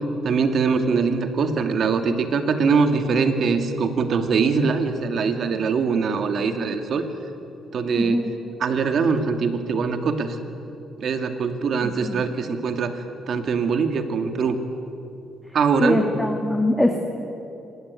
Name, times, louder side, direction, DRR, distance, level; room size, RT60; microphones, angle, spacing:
voice 1, 0.2-7.0 7.7-8.3 8.6-10.4 11.0-14.6 15.5-16.1, right 5 dB, 60° right, 7 dB, 2.3 m, -22 dB
voice 2, 11.8-12.2 15.8-17.0, left 1 dB, 5° left, 3 dB, 2.2 m, -22 dB
25.0 x 19.0 x 9.6 m, 2.9 s
cardioid pair, 90°, 0 cm